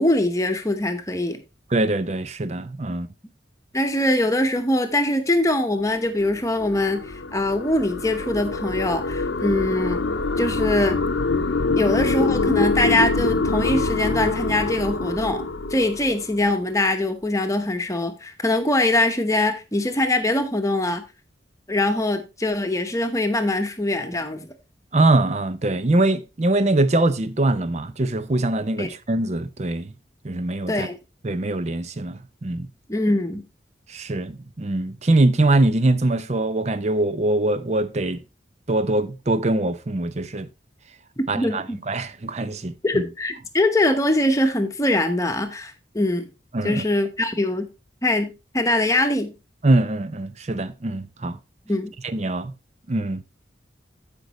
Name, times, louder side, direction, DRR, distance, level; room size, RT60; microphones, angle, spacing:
voice 1, 0.0-1.4 3.7-10.0 10.4-11.0 11.8-15.4 15.7-21.0 21.7-24.5 28.8-28.9 30.7-31.0 32.9-33.4 41.3-41.8 42.8-46.3 46.6-47.7 48.0-49.3 51.7-51.9, left 1 dB, 15° left, 1.0 m, -22 dB
voice 2, 1.7-3.1 24.9-29.9 30.2-30.9 31.2-32.7 33.9-38.2 38.7-40.5 41.3-43.0 46.5-46.8 49.6-51.4 52.0-52.5 52.9-53.2, right 2 dB, 35° right, 0.6 m, -23 dB
sound 1, 6.0-16.6, left 3 dB, 80° left, 0.7 m, -25 dB
14.5 x 5.2 x 3.0 m
head